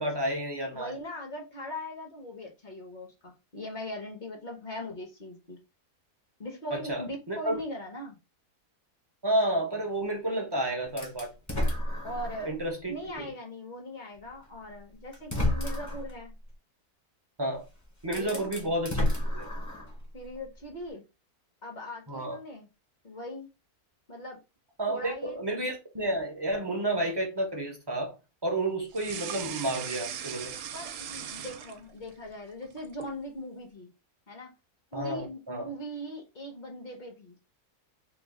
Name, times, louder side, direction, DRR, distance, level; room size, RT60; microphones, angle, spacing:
voice 1, 0.0-0.9 6.7-7.6 9.2-11.3 12.4-13.3 17.4-17.6 18.0-19.0 19.3-19.5 22.1-22.4 24.8-28.2 28.4-30.5 34.9-35.7, right 1 dB, 25° right, 0.5 m, -31 dB
voice 2, 0.7-5.6 6.4-8.2 12.0-12.5 12.8-16.3 18.1-18.4 20.1-21.0 21.6-22.7 23.0-23.5 24.1-24.4 24.9-25.4 30.7-33.9 34.3-34.5 34.9-37.3, equal, 40° left, 0.8 m, -40 dB
sound 1, 11.0-12.6 13.1-13.2 14.4-14.5 15.1-16.1 17.5-17.6 18.0-20.0, left 1 dB, 15° left, 0.6 m, -30 dB
sound 2, 28.9-32.1 32.5-33.2, right 9 dB, 85° right, 1.1 m, -39 dB
3.1 x 2.3 x 3.5 m
omnidirectional pair, 1.6 m